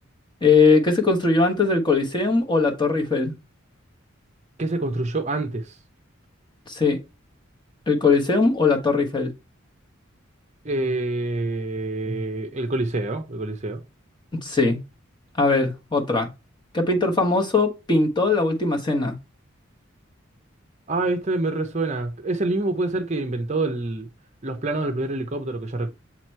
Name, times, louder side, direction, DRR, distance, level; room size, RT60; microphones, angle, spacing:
voice 1, 0.4-3.3 6.7-7.0 7.9-9.3 14.4-14.8 15.4-16.3 16.7-19.2, left 3 dB, 20° left, 1.1 m, -20 dB
voice 2, 4.6-5.7 10.6-13.8 20.9-24.1 24.4-25.9, right 2 dB, 30° right, 0.6 m, -26 dB
7.4 x 2.9 x 4.4 m
head